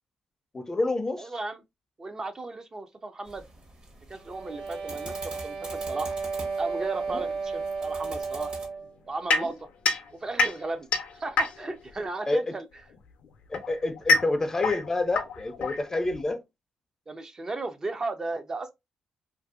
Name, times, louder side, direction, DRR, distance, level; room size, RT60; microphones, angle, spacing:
voice 1, 0.5-1.3 7.1-7.3 9.4-9.5 12.3-12.4 13.5-16.4, left 2 dB, 25° left, 0.5 m, -28 dB
voice 2, 1.2-1.6 2.0-3.4 4.1-6.1 6.6-8.5 9.1-9.7 10.1-10.9 11.1-12.7 17.1-18.7, right 3 dB, 30° right, 0.5 m, -35 dB
sound 1, 3.3-8.7, right 2 dB, 45° right, 1.0 m, -45 dB
sound 2, 4.2-8.9, right 4 dB, 80° right, 0.8 m, -33 dB
sound 3, 9.3-11.9 12.9-16.3, left 3 dB, 75° left, 0.5 m, -27 dB
2.6 x 2.5 x 2.4 m
cardioid pair, 75°, 2 cm